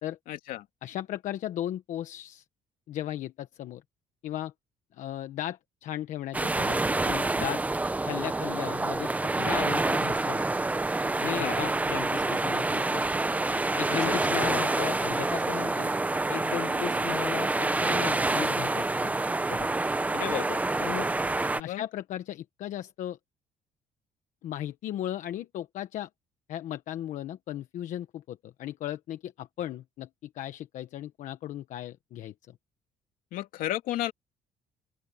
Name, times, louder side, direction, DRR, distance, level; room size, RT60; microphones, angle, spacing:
voice 1, 0.3-0.7 11.4-11.6 13.9-14.2 20.1-20.6 21.5-21.8 33.3-34.1, left 14 dB, 80° left, 2.9 m, -33 dB
voice 2, 0.8-2.4 2.9-3.8 4.2-4.5 4.9-7.6 8.0-9.1 9.4-10.4 11.2-13.0 13.8-15.9 16.3-19.1 19.5-19.7 20.8-21.1 21.6-23.2 24.4-26.1 26.5-32.6, left 12 dB, 65° left, 1.2 m, -36 dB
sound 1, 6.3-21.6, right 2 dB, 10° right, 0.8 m, -27 dB
sound 2, 14.6-16.2 16.5-17.4 17.8-18.7, right 15 dB, 90° right, 4.9 m, -47 dB
open air
cardioid pair, 140°, 14 cm